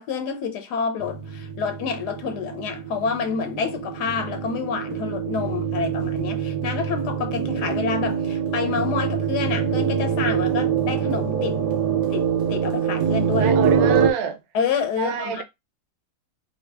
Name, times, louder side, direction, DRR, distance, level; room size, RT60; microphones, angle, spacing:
voice 1, 0.0-11.6 12.1-13.6 14.5-15.4, left 6 dB, 85° left, 1.2 m, -28 dB
sound 1, 1.0-14.1, right 7 dB, 85° right, 1.4 m, -24 dB
voice 2, 13.4-14.4 15.0-15.4, right 8 dB, 70° right, 1.1 m, -27 dB
3.5 x 2.8 x 3.3 m
omnidirectional pair, 1.7 m